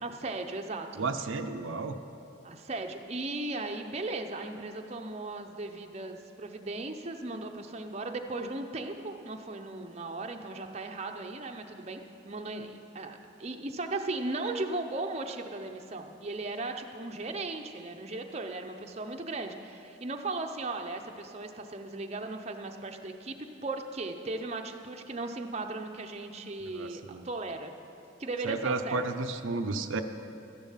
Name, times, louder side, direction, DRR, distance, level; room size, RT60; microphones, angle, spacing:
voice 1, 0.0-1.0 2.4-27.7 28.2-29.0, right 2 dB, 35° right, 4 dB, 0.6 m, -37 dB
voice 2, 1.0-2.0 26.8-27.2 28.4-30.0, right 3 dB, 85° right, 7 dB, 0.6 m, -32 dB
13.5 x 10.5 x 5.7 m, 2.7 s
head